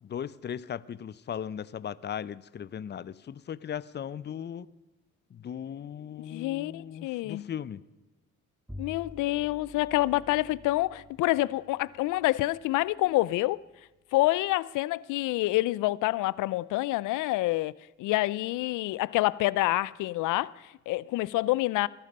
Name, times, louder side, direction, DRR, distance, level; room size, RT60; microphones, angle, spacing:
voice 1, 0.0-4.7 5.3-7.8, left 8 dB, 35° left, 0.6 m, -37 dB
voice 2, 6.3-7.5 8.8-13.6 14.1-17.7 18.0-21.9, left 18 dB, 90° left, 0.5 m, -27 dB
Bowed string instrument, 8.7-14.3, left 2 dB, 5° right, 1.7 m, -50 dB
21.5 x 12.0 x 5.4 m
cardioid pair, 90°, 30 cm